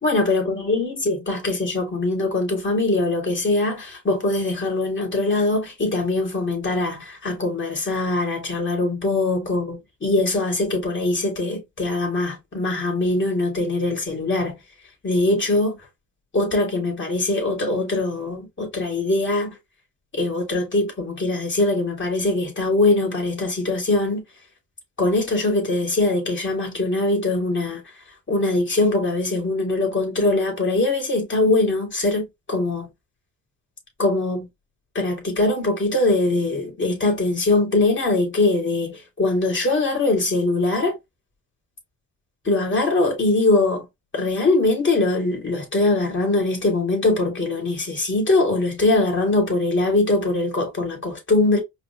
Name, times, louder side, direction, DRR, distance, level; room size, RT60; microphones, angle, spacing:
voice 1, 0.0-14.6 15.0-15.8 16.3-19.6 20.1-24.2 25.0-32.9 34.0-34.5 34.9-41.0 42.4-43.8 44.1-51.6, left 2 dB, 30° left, 3.0 m, -22 dB
5.0 x 2.3 x 3.3 m
supercardioid pair, 75°, 36 cm